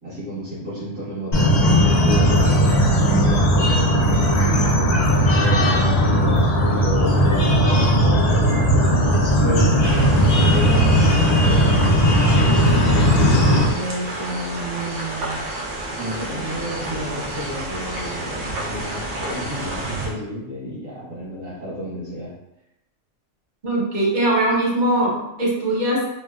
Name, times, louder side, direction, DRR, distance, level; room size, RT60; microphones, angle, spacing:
voice 1, 0.0-9.7 10.4-11.0 11.4-12.0 12.9-15.5 16.0-22.3, equal, 70° right, -9 dB, 1.7 m, -31 dB
sound 1, 1.3-13.6, equal, 85° left, 0.3 m, -17 dB
sound 2, 9.8-20.1, right 1 dB, 85° right, 1.1 m, -30 dB
voice 2, 23.6-26.1, right 1 dB, 50° right, -3 dB, 0.6 m, -21 dB
3.6 x 2.1 x 2.3 m, 0.89 s
omnidirectional pair, 1.4 m